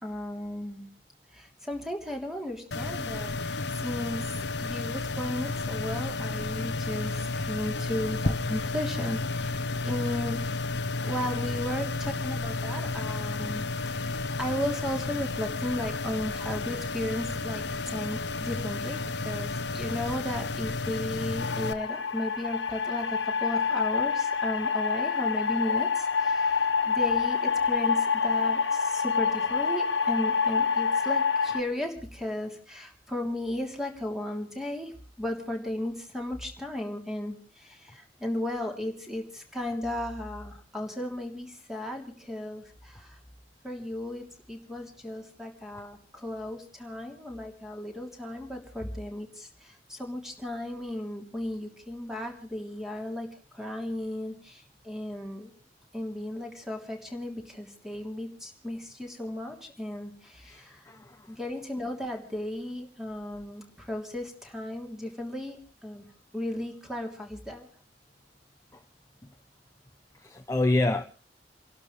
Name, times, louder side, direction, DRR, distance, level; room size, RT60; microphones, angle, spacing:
voice 1, 0.0-0.9 1.3-4.3 4.6-10.4 11.0-13.7 14.0-43.2 43.6-53.3 53.5-55.5 55.9-60.8 61.3-66.0 66.3-67.7, left 1 dB, 5° right, 1 dB, 3.2 m, -35 dB
sound 1, 2.7-21.7, left 3 dB, 65° left, 0.9 m, -32 dB
sound 2, 21.4-31.6, left 5 dB, 85° left, 1.6 m, -27 dB
voice 2, 60.4-61.3 68.7-68.8 70.2-71.0, left 2 dB, 15° left, 5 dB, 0.9 m, -28 dB
29.5 x 12.0 x 3.3 m, 0.40 s
head